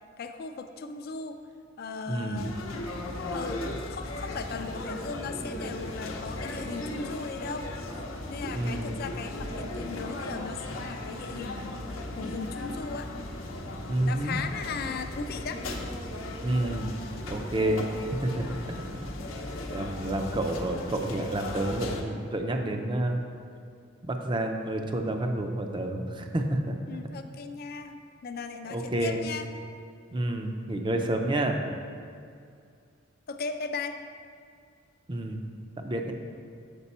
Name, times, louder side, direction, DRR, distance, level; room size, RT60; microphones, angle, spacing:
voice 1, 0.0-1.4 1.8-2.6 3.3-7.7 8.3-11.8 12.1-13.1 14.0-15.6 26.9-29.5 33.3-34.0, left 4 dB, 50° left, 7 dB, 0.4 m, -37 dB
voice 2, 2.1-2.5 8.5-8.9 13.9-14.4 16.4-17.0 17.3-17.9 18.2-19.0 19.7-23.2 24.1-26.8 28.7-29.2 30.1-31.6 35.1-35.4 35.8-36.1, right 1 dB, 25° right, 4 dB, 0.5 m, -29 dB
sound 1, 2.3-22.0, left 1 dB, 90° left, 0.7 m, -37 dB
6.9 x 5.2 x 4.2 m, 2.3 s
head